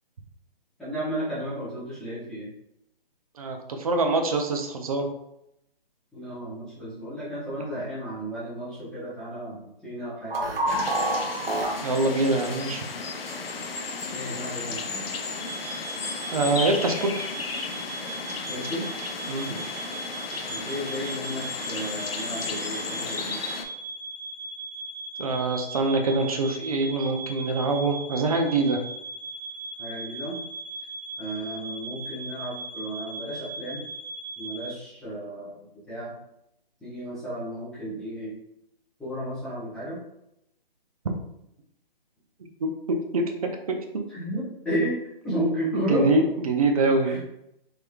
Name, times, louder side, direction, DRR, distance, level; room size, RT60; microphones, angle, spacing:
voice 1, 0.8-2.5 6.1-10.7 14.1-15.5 18.3-18.9 19.4-19.8 20.5-23.4 29.8-30.4 31.2-33.9 34.4-35.6 35.9-36.1 36.8-38.3 39.0-40.0 44.1-45.0 45.2-46.1 47.0-47.2, right 1 dB, ahead, -13 dB, 0.8 m, -33 dB
voice 2, 3.4-5.1 11.8-12.8 16.3-17.3 19.3-19.5 25.2-28.8 42.6-43.3 43.7-43.8 45.9-47.2, right 2 dB, 40° right, 4 dB, 0.5 m, -24 dB
sound 1, 10.3-11.8 12.5-12.6 13.3-13.4 14.0-14.1, right 1 dB, 75° right, 1.2 m, -27 dB
sound 2, 10.7-23.7, left 4 dB, 75° left, 0.6 m, -34 dB
sound 3, 15.4-34.7, right 2 dB, 25° left, 1.1 m, -38 dB
3.6 x 3.0 x 2.3 m, 0.81 s
hypercardioid pair, 155°, 29 cm